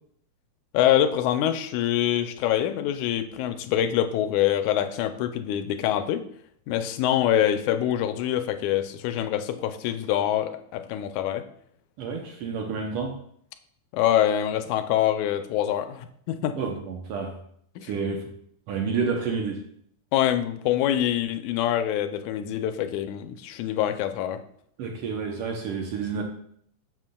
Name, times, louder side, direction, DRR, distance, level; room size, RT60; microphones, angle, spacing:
voice 1, 0.7-6.2 6.7-11.5 13.9-16.6 17.8-18.2 20.1-24.4, left 11 dB, 80° left, 9 dB, 2.0 m, -25 dB
voice 2, 12.0-13.2 16.6-17.4 17.8-18.4 18.7-19.6 24.8-26.2, right 5 dB, 75° right, 2 dB, 1.4 m, -29 dB
10.5 x 7.1 x 2.2 m, 0.67 s
omnidirectional pair, 3.5 m